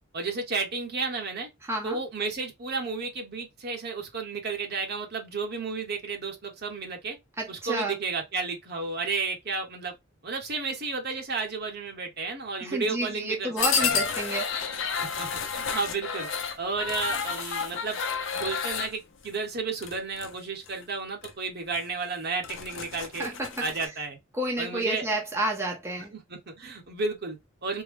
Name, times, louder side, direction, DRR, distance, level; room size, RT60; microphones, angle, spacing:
voice 1, 0.1-1.5 1.8-7.2 7.5-9.9 10.2-14.0 15.0-16.3 16.6-18.0 18.3-24.2 24.6-25.0 26.1-27.8, right 4 dB, 50° right, 1.1 m, -32 dB
voice 2, 1.7-2.0 7.4-8.0 12.6-14.5 23.2-23.6 24.3-26.1, right 1 dB, 10° right, 0.7 m, -30 dB
sound 1, 13.6-18.9 19.8-20.3 20.7-20.8 21.2-21.3 21.7-21.8 22.2-23.9, left 6 dB, 60° left, 0.7 m, -30 dB
3.7 x 2.2 x 3.1 m
head